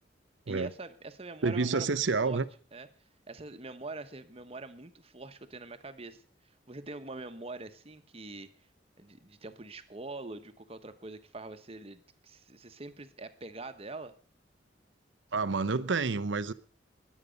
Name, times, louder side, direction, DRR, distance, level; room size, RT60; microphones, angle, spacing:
voice 1, 0.5-2.0 2.2-2.4 2.7-2.9 3.3-6.2 6.7-8.5 9.0-14.1, right 2 dB, 30° right, 1.1 m, -44 dB
voice 2, 1.4-2.4 15.3-16.5, right 4 dB, 85° right, 0.8 m, -29 dB
20.5 x 8.4 x 5.2 m
head